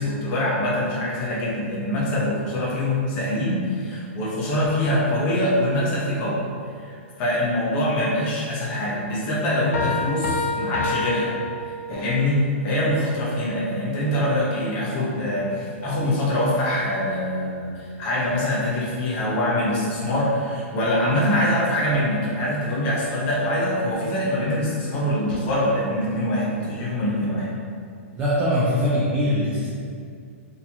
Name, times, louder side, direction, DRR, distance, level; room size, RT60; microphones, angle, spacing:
voice 1, 0.0-6.4 6.8-11.3 11.6-27.5, left 1 dB, 20° left, -6 dB, 0.7 m, -24 dB
sound 1, 9.7-12.2, left 3 dB, 85° left, 0.5 m, -27 dB
voice 2, 28.1-29.7, equal, 15° right, -8 dB, 0.3 m, -22 dB
4.0 x 2.8 x 2.7 m, 2.3 s
hypercardioid pair, 175°, 7 cm